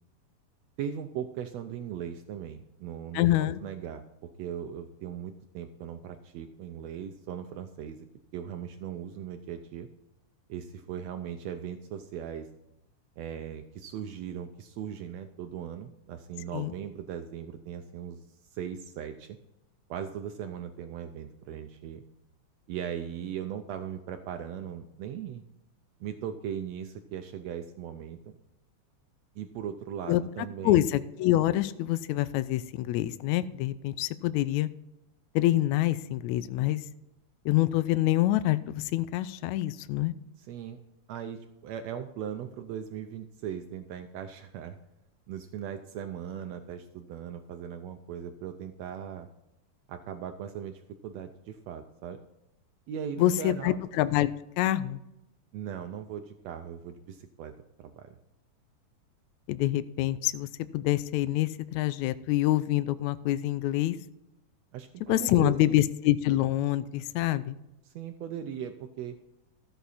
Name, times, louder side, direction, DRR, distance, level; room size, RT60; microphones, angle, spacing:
voice 1, 0.8-3.3 3.6-8.0 8.3-9.9 10.5-12.5 13.2-19.4 19.9-22.0 22.7-25.4 26.0-28.4 29.3-30.8 40.4-40.8 41.1-44.8 45.3-49.3 49.9-52.2 52.9-53.8 55.5-57.5 57.8-58.2 64.7-65.8 67.8-69.2, right 9 dB, 90° right, 7 dB, 1.5 m, -39 dB
voice 2, 3.1-3.6 16.5-16.7 30.1-30.2 30.6-34.7 35.4-36.8 37.5-40.1 53.2-54.3 54.6-55.0 59.5-60.5 60.7-64.0 65.1-67.6, left 15 dB, 85° left, 14 dB, 1.6 m, -26 dB
14.0 x 8.0 x 4.1 m, 0.90 s
omnidirectional pair, 3.8 m